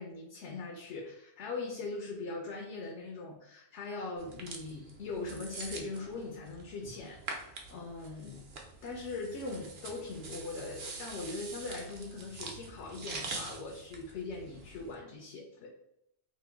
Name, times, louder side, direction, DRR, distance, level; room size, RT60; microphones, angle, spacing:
voice 1, 0.0-8.5 8.8-15.7, left 3 dB, 80° left, 0 dB, 0.9 m, -41 dB
sound 1, 4.2-14.9, right 3 dB, 55° right, 0.7 m, -45 dB
2.9 x 2.1 x 3.3 m, 0.80 s
omnidirectional pair, 1.2 m